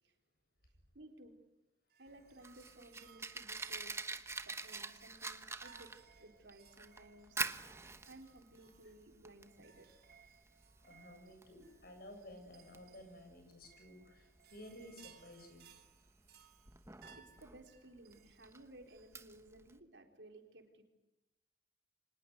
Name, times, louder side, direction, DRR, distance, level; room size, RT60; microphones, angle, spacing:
voice 1, 0.9-1.3 2.0-4.0 4.4-7.4 8.1-9.9 17.1-20.8, right 1 dB, 80° right, 5 dB, 4.0 m, -57 dB
sound 1, 1.9-19.4, right 8 dB, 60° right, 3.6 m, -64 dB
Fire, 2.1-19.8, right 3 dB, 15° right, 1.1 m, -47 dB
voice 2, 10.8-15.7, left 1 dB, 55° left, 5 dB, 7.7 m, -54 dB
25.5 x 19.5 x 9.5 m, 0.95 s
head